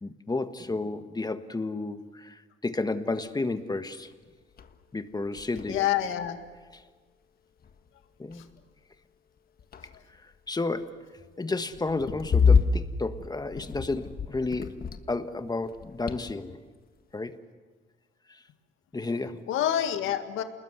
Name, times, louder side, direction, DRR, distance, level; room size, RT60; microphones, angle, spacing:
voice 1, 0.0-4.1 4.9-5.8 6.7-6.8 8.2-8.4 10.5-11.0 11.4-14.8 15.1-16.6 17.1-17.4 18.3-18.4 18.9-19.4, left 3 dB, 20° left, 10 dB, 1.5 m, -32 dB
sound 1, 4.1-4.2 4.6-4.9 5.1-6.8 7.6-8.1 8.3-8.6 9.4-10.3 11.7-15.3 15.6-16.6, left 5 dB, 50° left, 1.5 m, -28 dB
voice 2, 5.7-6.4 8.3-8.4 19.5-20.4, left 11 dB, 90° left, 8 dB, 1.9 m, -27 dB
27.5 x 21.0 x 8.2 m, 1.4 s
cardioid pair, 90°, 20 cm